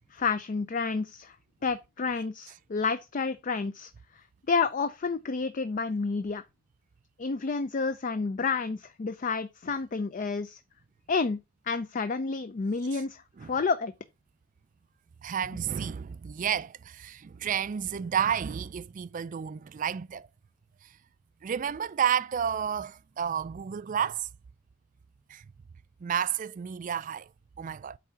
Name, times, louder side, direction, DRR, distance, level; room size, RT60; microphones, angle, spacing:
voice 1, 0.0-1.4 1.6-3.9 4.5-6.4 7.2-10.6 11.1-11.4 11.7-13.9, left 4 dB, 35° left, 0.4 m, -30 dB
voice 2, 15.2-20.3 20.8-20.9 21.4-24.3 25.3-25.5 26.0-27.3 27.6-28.0, right 8 dB, 40° right, 0.3 m, -31 dB
8.3 x 3.5 x 5.6 m
head